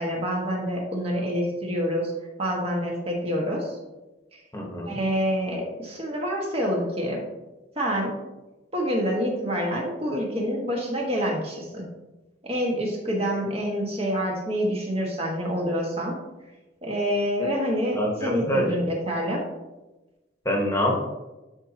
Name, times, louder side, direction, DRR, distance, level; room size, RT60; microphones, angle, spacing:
voice 1, 0.0-2.1 2.4-3.8 4.8-7.2 7.7-8.1 8.7-11.8 12.4-16.1 16.8-19.4, equal, 35° right, -1 dB, 1.6 m, -27 dB
voice 2, 4.5-5.0 17.9-18.7 20.4-21.0, equal, 15° left, -1 dB, 1.3 m, -25 dB
11.5 x 4.5 x 2.9 m, 1.1 s
head